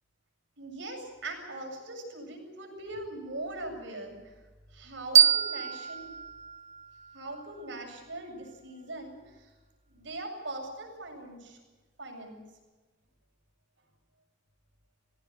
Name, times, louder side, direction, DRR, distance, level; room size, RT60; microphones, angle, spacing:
voice 1, 0.6-4.4 4.7-6.1 7.1-9.5 9.9-11.4 12.0-12.4, right 2 dB, 65° right, 3 dB, 7.5 m, -41 dB
sound 1, 5.1-7.9, right 9 dB, 35° right, 1.1 m, -26 dB
22.5 x 17.0 x 9.6 m, 1.2 s
head